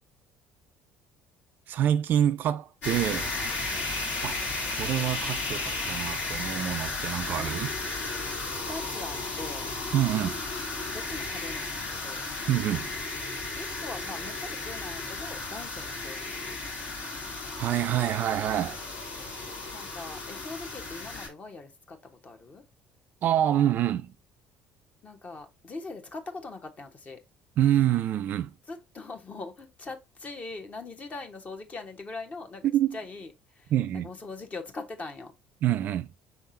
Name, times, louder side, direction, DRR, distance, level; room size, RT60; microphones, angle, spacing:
voice 1, 1.7-3.3 4.2-4.4 4.7-7.7 9.9-10.4 12.5-12.9 17.6-18.8 23.2-24.1 27.6-28.5 32.7-33.0 33.7-34.1 35.6-36.1, right 11 dB, 50° right, 0.3 m, -26 dB
sound 1, 2.8-21.3, left 3 dB, 60° left, 1.8 m, -34 dB
voice 2, 8.5-9.7 10.9-12.3 13.5-16.6 19.7-22.0 22.2-22.6 25.0-27.2 28.7-32.6 32.9-33.7 34.0-35.3, left 3 dB, 35° left, 1.1 m, -41 dB
5.6 x 3.6 x 2.7 m
figure-of-eight pair, 55°, 4 cm